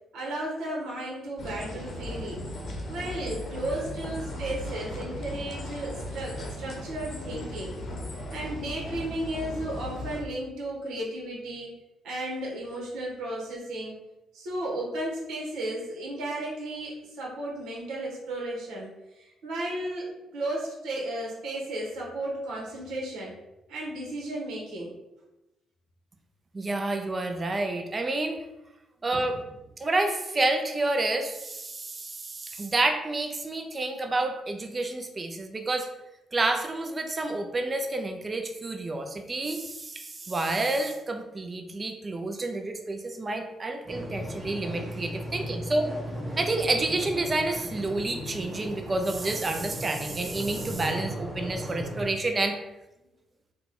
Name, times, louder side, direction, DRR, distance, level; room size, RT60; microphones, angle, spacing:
voice 1, 0.1-2.4 2.9-7.8 8.3-11.7 12.0-13.9 14.3-23.3 23.7-24.9, right 1 dB, 80° right, -3 dB, 1.0 m, -34 dB
sound 1, 1.4-10.2, left 1 dB, 50° left, 0.7 m, -37 dB
voice 2, 26.5-28.4 29.0-29.4 29.8-35.9 36.3-45.9 46.4-52.6, right 2 dB, 30° right, 5 dB, 0.4 m, -29 dB
sound 2, 43.9-52.1, equal, 10° right, 0.8 m, -36 dB
2.9 x 2.3 x 4.0 m, 0.95 s
cardioid pair, 90°, 0 cm